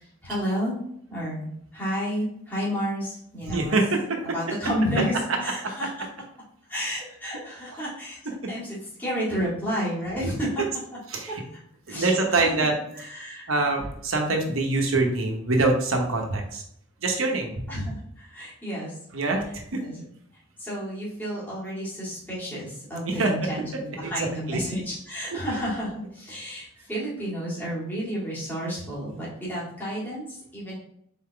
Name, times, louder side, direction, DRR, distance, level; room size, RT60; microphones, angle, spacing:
voice 1, 0.2-0.8 1.1-3.7 4.2-5.1 5.4-5.9 6.7-10.6 11.3-11.4 11.9-12.7 12.9-13.5 17.7-18.9 19.8-20.0 20.6-30.7, equal, 10° left, -9 dB, 1.8 m, -31 dB
voice 2, 3.5-4.2 7.7-7.9 8.4-8.5 11.1-11.4 11.9-12.7 13.5-16.6 17.0-17.5 19.1-19.4 19.7-19.8 23.0-23.5 24.0-24.8, right 2 dB, 80° right, 2 dB, 1.0 m, -25 dB
4.2 x 3.8 x 3.4 m, 0.70 s
head